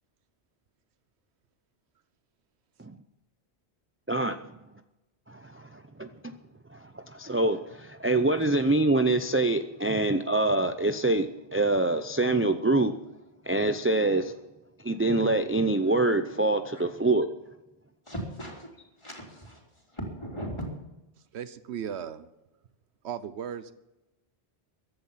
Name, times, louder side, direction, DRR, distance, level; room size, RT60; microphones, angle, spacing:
voice 1, 4.1-4.4 5.3-6.3 6.7-12.9 13.5-14.3 14.8-17.3, right 2 dB, 15° right, 8 dB, 0.5 m, -25 dB
voice 2, 18.1-18.7 19.0-20.7, equal, 25° left, -1 dB, 3.6 m, -38 dB
voice 3, 21.3-22.3 23.0-23.7, right 8 dB, 90° right, 13 dB, 1.1 m, -36 dB
15.0 x 11.5 x 5.7 m, 0.98 s
omnidirectional pair, 1.1 m